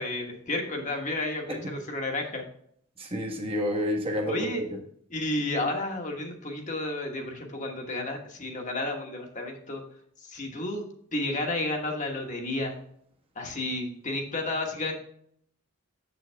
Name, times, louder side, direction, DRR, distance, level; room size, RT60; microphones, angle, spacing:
voice 1, 0.0-2.4 4.3-4.6 5.1-9.8 10.2-10.9 11.1-12.8 13.3-15.0, left 2 dB, 35° left, 2 dB, 1.2 m, -31 dB
voice 2, 3.0-4.8, equal, 25° right, 2 dB, 1.1 m, -30 dB
7.4 x 7.1 x 3.4 m, 0.65 s
head